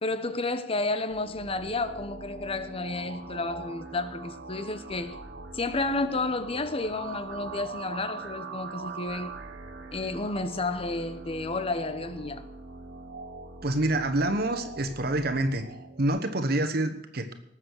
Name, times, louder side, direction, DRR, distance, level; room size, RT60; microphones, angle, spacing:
voice 1, 0.0-5.2 5.5-9.4 9.9-12.4, left 2 dB, 30° left, 0.9 m, -31 dB
sound 1, 1.1-16.1, right 3 dB, 80° right, 1.9 m, -42 dB
voice 2, 13.6-15.6 16.0-17.3, right 1 dB, 60° right, 1.2 m, -27 dB
19.0 x 7.5 x 6.4 m
head